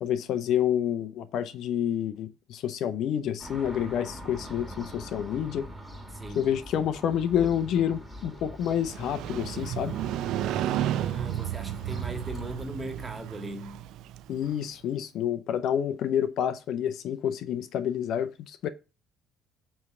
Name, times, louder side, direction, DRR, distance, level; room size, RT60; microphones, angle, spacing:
voice 1, 0.0-5.7 6.4-10.0 14.3-18.7, left 9 dB, 65° left, 0.6 m, -28 dB
sound 1, 3.4-12.7, equal, ahead, 2.0 m, -44 dB
voice 2, 6.1-6.5 10.4-13.8, right 1 dB, 20° right, 1.7 m, -39 dB
Motorcycle, 8.7-14.6, right 12 dB, 70° right, 0.4 m, -33 dB
7.1 x 3.3 x 5.5 m
supercardioid pair, 75°, 0 cm